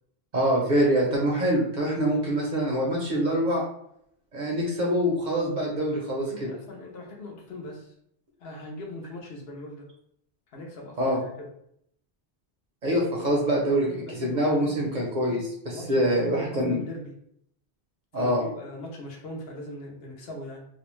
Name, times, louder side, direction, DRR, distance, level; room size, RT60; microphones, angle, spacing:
voice 1, 0.3-3.6 4.3-6.5 11.0-11.2 12.8-16.8 18.1-18.4, equal, 55° right, -2 dB, 0.6 m, -25 dB
voice 2, 6.3-7.9 8.4-9.9 10.5-11.5 13.1-13.4 13.7-14.8 15.7-17.1 18.2-20.7, left 1 dB, 65° left, 0 dB, 0.8 m, -40 dB
2.5 x 2.1 x 3.0 m, 0.72 s
omnidirectional pair, 1.1 m